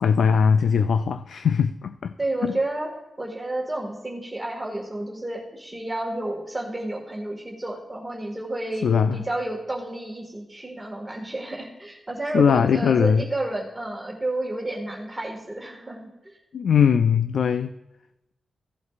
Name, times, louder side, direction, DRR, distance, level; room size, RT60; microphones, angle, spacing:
voice 1, 0.0-2.1 2.4-2.5 8.8-9.2 12.3-13.2 16.5-17.7, left 7 dB, 80° left, 0.3 m, -20 dB
voice 2, 2.2-2.9 3.2-16.1, right 1 dB, 10° right, 1.9 m, -31 dB
16.0 x 8.0 x 2.5 m
wide cardioid pair, 120°, 0 cm